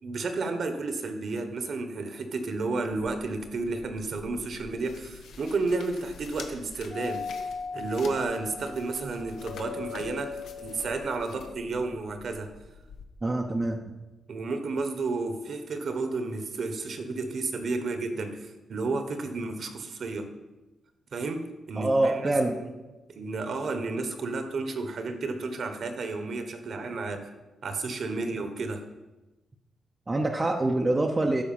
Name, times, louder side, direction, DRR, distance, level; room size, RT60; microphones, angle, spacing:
voice 1, 0.0-12.5 14.3-20.3 21.1-22.3 22.6-22.7 23.1-27.3 27.6-28.8, right 3 dB, 50° right, 8 dB, 1.1 m, -32 dB
sound 1, 2.9-13.0, left 5 dB, 90° left, 1.2 m, -48 dB
Doorbell, 6.9-11.7, left 5 dB, 35° left, 0.8 m, -39 dB
voice 2, 13.2-13.8 21.8-22.6 30.1-31.4, right 2 dB, 20° right, 2 dB, 0.7 m, -25 dB
12.5 x 4.8 x 7.1 m, 1.1 s
wide cardioid pair, 160°, 0 cm